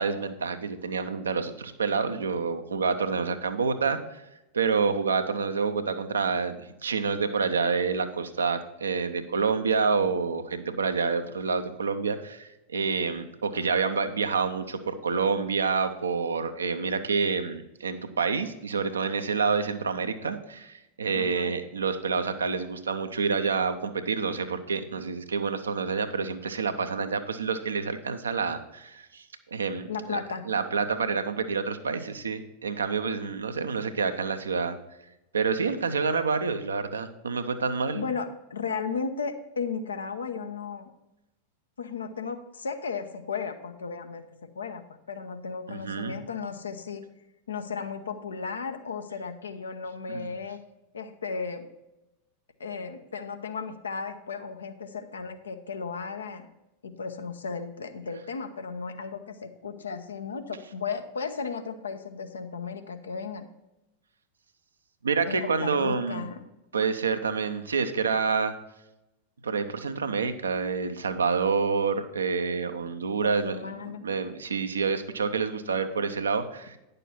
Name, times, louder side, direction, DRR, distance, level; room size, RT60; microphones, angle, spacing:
voice 1, 0.0-4.2 4.5-29.2 29.5-30.2 30.5-34.8 35.3-38.0 45.7-46.2 50.1-50.3 65.0-66.3 66.7-68.5 69.4-73.6 74.0-76.8, right 5 dB, 70° right, 8 dB, 0.7 m, -28 dB
voice 2, 21.1-21.5 29.9-30.5 35.7-35.8 37.9-40.9 41.8-44.3 44.5-44.8 45.1-47.0 47.5-50.6 50.9-51.7 52.6-56.5 56.8-63.5 65.3-66.4 73.2-74.0, left 5 dB, 70° left, 8 dB, 0.8 m, -35 dB
9.9 x 6.6 x 4.3 m, 0.93 s
figure-of-eight pair, 90°, 0 cm